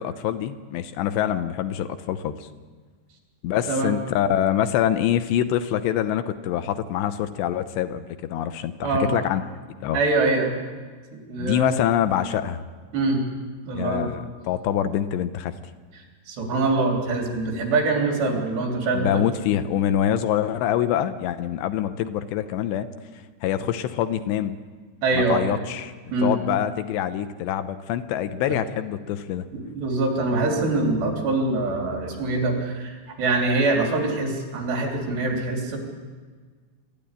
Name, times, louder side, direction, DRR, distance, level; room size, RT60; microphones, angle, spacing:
voice 1, 0.0-2.5 3.4-9.4 9.8-10.0 11.4-12.6 13.7-15.6 18.9-22.9 23.4-24.5 25.1-25.9 26.2-29.5, left 10 dB, 80° left, 10 dB, 3.0 m, -25 dB
voice 2, 9.9-10.6 11.3-11.8 12.9-13.2 13.6-14.1 16.3-19.2 25.0-25.4 26.1-26.3 29.8-35.8, right 3 dB, 70° right, 1 dB, 5.6 m, -24 dB
25.0 x 14.0 x 10.0 m, 1.5 s
omnidirectional pair, 5.1 m